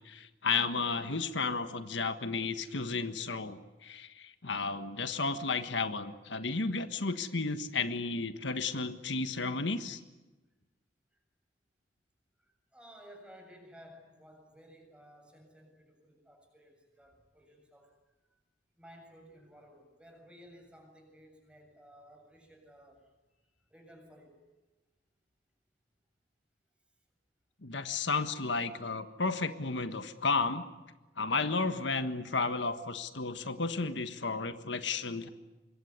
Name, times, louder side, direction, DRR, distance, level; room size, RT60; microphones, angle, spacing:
voice 1, 0.0-10.0 27.6-30.6 31.2-35.3, left 4 dB, 85° left, 9 dB, 1.5 m, -33 dB
voice 2, 12.4-18.0 18.3-18.4 18.8-24.4, equal, 5° right, 3 dB, 7.4 m, -56 dB
26.0 x 22.0 x 9.6 m, 1.1 s
head